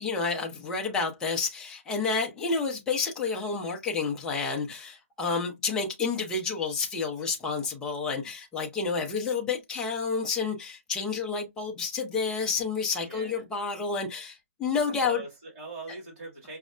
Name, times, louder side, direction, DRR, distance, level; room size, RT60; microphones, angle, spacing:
voice 1, 0.0-15.2, left 5 dB, 10° left, 0.5 m, -30 dB
voice 2, 13.0-13.4 15.0-16.6, right 3 dB, 25° right, 1.9 m, -41 dB
5.1 x 2.1 x 2.4 m
hypercardioid pair, 160°, 8 cm